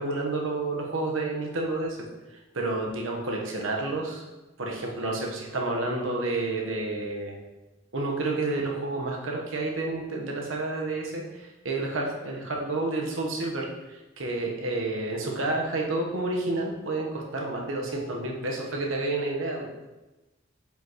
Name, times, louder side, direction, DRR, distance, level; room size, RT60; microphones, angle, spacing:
voice 1, 0.0-2.0 2.5-4.2 4.6-7.4 7.9-19.7, right 2 dB, 85° right, 0 dB, 1.3 m, -30 dB
7.0 x 5.2 x 3.1 m, 1.1 s
head